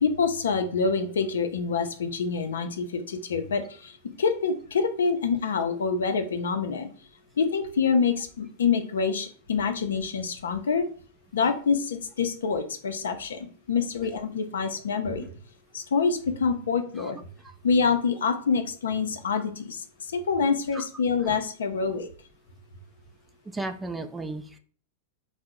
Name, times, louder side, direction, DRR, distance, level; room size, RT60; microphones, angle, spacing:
voice 1, 0.0-6.9 7.4-10.9 11.3-15.3 15.7-17.2 17.6-22.1, left 5 dB, 80° left, 7 dB, 0.4 m, -26 dB
voice 2, 23.5-24.6, right 2 dB, 10° right, 7 dB, 0.3 m, -35 dB
2.7 x 2.0 x 3.5 m, 0.43 s
hypercardioid pair, 110°, 0 cm